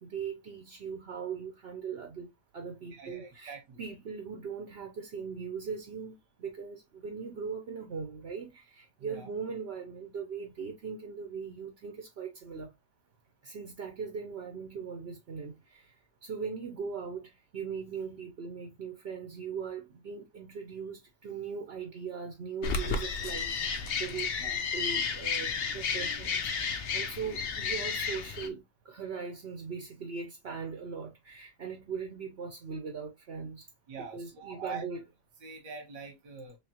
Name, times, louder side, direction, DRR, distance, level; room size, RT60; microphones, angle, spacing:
voice 1, 0.0-12.7 13.4-16.0 16.2-23.5 24.0-33.7 34.1-35.0, right 6 dB, 50° right, 0.8 m, -40 dB
voice 2, 2.9-3.8 9.0-9.3 24.4-24.6 33.9-34.8 35.4-36.6, right 5 dB, 85° right, 1.8 m, -44 dB
sound 1, 22.6-28.5, left 5 dB, 85° left, 0.5 m, -32 dB
3.7 x 3.3 x 2.8 m
omnidirectional pair, 1.8 m